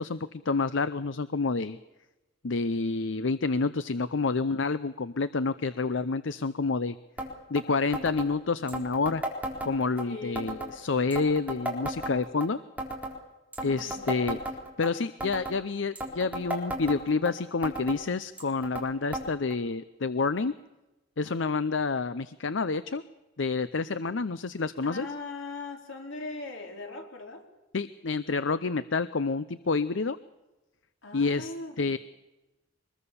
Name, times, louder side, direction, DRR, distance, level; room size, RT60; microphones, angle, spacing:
voice 1, 0.0-1.8 2.4-7.0 7.5-9.2 9.6-12.6 13.6-14.4 14.8-20.5 21.2-23.0 23.4-25.1 27.7-30.2 31.1-32.0, left 4 dB, 70° left, 14 dB, 0.7 m, -28 dB
sound 1, 7.2-7.3 7.6-7.7 7.9-8.3 8.7-10.0 10.4-10.7 11.1-12.5 12.8-13.2 13.5-14.9 15.2-15.6 16.0-17.3 17.6-18.0 18.4-18.9 19.1-19.3 19.5-19.6 20.4-20.5 21.3-21.4, right 1 dB, 10° right, 4.0 m, -34 dB
voice 2, 10.0-10.6 13.6-14.2 24.8-27.5 31.0-31.9, left 3 dB, 90° left, 3 dB, 4.5 m, -40 dB
25.0 x 21.0 x 7.1 m, 1.0 s
head